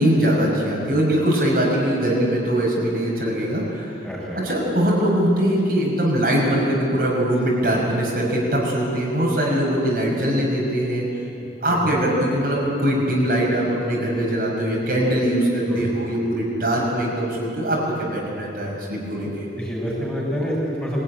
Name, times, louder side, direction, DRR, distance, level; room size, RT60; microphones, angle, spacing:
voice 1, 0.0-3.9 4.3-11.0 11.6-19.5, right 1 dB, 55° right, -3 dB, 5.8 m, -21 dB
voice 2, 4.0-4.4 11.7-12.3 15.7-15.9 19.2-21.0, equal, 5° left, -5 dB, 7.2 m, -28 dB
24.0 x 17.0 x 9.9 m, 2.7 s
head